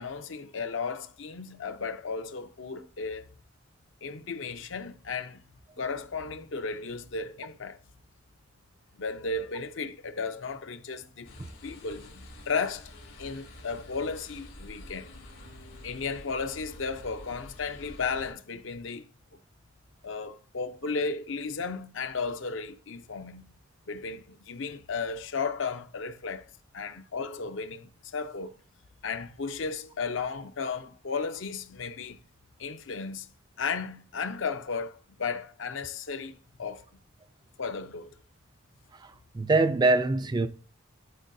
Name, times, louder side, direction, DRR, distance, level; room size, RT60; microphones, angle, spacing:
voice 1, 0.0-3.3 4.0-5.4 5.8-7.8 8.9-11.3 11.6-12.9 13.2-15.1 15.8-19.1 20.0-23.5 23.9-26.5 26.7-28.6 29.0-32.2 32.6-33.3 33.6-36.9 37.6-38.1, left 4 dB, 65° left, 0.6 m, -34 dB
sound 1, 11.2-18.3, left 1 dB, 85° left, 3.5 m, -48 dB
voice 2, 38.9-40.5, right 3 dB, 20° right, 0.3 m, -24 dB
11.5 x 4.5 x 2.6 m
head